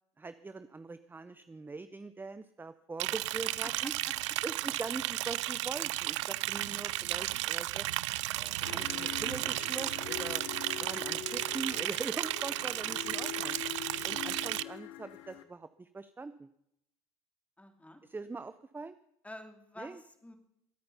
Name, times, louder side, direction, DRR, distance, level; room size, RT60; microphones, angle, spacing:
voice 1, 0.2-3.9 4.4-7.9 8.4-10.4 10.8-13.6 14.0-16.5 18.0-19.0 19.8-20.0, right 3 dB, 15° right, 12 dB, 0.6 m, -42 dB
Liquid, 3.0-14.6, right 17 dB, 80° right, 0.4 m, -34 dB
voice 2, 3.4-4.1 13.9-14.4 17.6-18.0 19.2-20.4, left 1 dB, 10° left, 6 dB, 2.5 m, -50 dB
sound 1, 8.6-15.4, left 13 dB, 75° left, 1.2 m, -43 dB
23.0 x 8.8 x 5.6 m, 0.77 s
hypercardioid pair, 70°, 15 cm